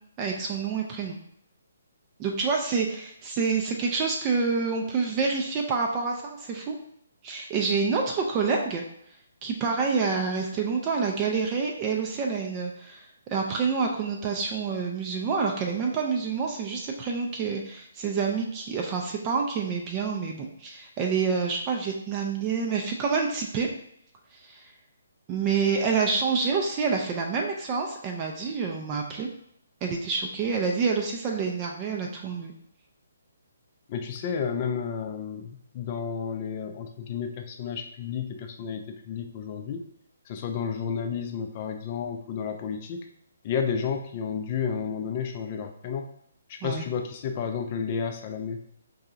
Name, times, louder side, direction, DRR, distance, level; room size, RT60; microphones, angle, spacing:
voice 1, 0.2-1.2 2.2-6.8 7.2-8.8 9.4-23.7 24.3-24.6 25.3-29.3 29.8-32.5 46.6-46.8, right 5 dB, 25° right, 1 dB, 0.5 m, -27 dB
voice 2, 33.9-39.8 40.3-43.1 43.4-46.1 46.5-48.6, left 6 dB, 30° left, 5 dB, 0.4 m, -31 dB
5.5 x 2.7 x 2.4 m, 0.73 s
figure-of-eight pair, 135°, 0 cm